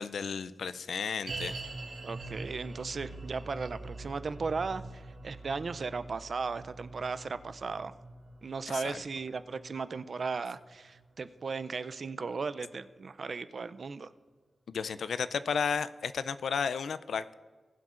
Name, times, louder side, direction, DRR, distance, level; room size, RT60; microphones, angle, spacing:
voice 1, 0.0-1.6 8.7-9.0 14.7-17.3, left 6 dB, 90° left, 15 dB, 0.4 m, -33 dB
sound 1, 1.3-12.5 12.8-12.9 13.5-13.6, right 2 dB, 70° right, 2.8 m, -45 dB
voice 2, 2.0-7.9 8.4-14.1, right 4 dB, 50° right, 13 dB, 0.4 m, -36 dB
19.5 x 7.7 x 2.5 m, 1.4 s
wide cardioid pair, 155°, 0 cm